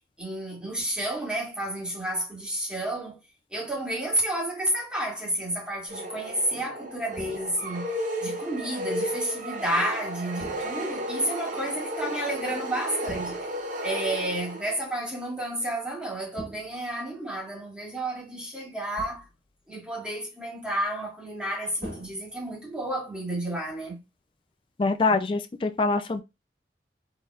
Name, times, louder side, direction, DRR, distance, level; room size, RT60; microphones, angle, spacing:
voice 1, 0.2-3.2 3.5-7.9 8.2-13.4 13.8-19.3 19.7-24.0, right 1 dB, 5° right, 1.7 m, -31 dB
sound 1, 5.9-15.0, right 1 dB, 45° right, 0.7 m, -33 dB
sound 2, 7.2-7.8 10.4-11.1 13.1-13.7 16.4-17.3 19.0-19.5 21.8-22.9, equal, 60° right, 2.3 m, -43 dB
voice 2, 24.8-26.2, left 3 dB, 30° left, 0.3 m, -24 dB
4.0 x 3.3 x 2.3 m
head